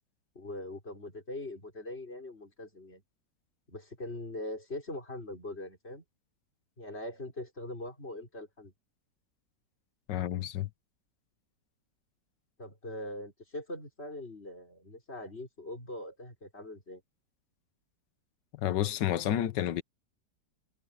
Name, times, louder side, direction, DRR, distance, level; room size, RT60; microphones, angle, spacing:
voice 1, 0.4-3.0 3.7-6.0 6.8-8.7 12.6-17.0, left 1 dB, 35° left, 5.6 m, -42 dB
voice 2, 10.1-10.7 18.5-19.8, left 11 dB, 85° left, 1.5 m, -30 dB
omnidirectional pair, 1.9 m